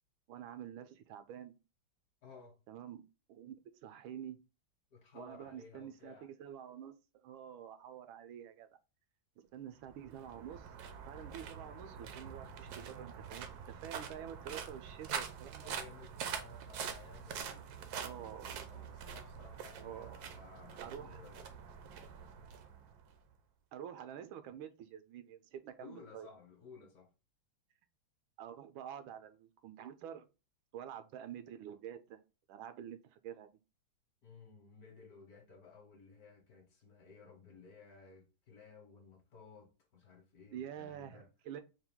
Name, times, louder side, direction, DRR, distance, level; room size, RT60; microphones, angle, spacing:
voice 1, 0.3-1.5 2.7-3.0 3.3-3.6 3.8-4.4 5.1-7.0 7.2-8.7 9.4-10.7 11.1-15.7 18.0-18.5 19.8-20.3 20.8-21.2 23.7-26.3 28.4-30.3 30.7-32.2 32.5-33.5 40.5-41.6, right 9 dB, 85° right, 1.4 m, -48 dB
voice 2, 2.2-2.6 4.9-6.3 9.7-9.8 15.6-21.6 22.2-22.3 25.8-27.1 34.2-41.3, left 4 dB, 60° left, 1.2 m, -57 dB
sound 1, 9.8-23.2, right 7 dB, 70° right, 0.9 m, -45 dB
4.5 x 2.3 x 3.4 m
omnidirectional pair, 2.2 m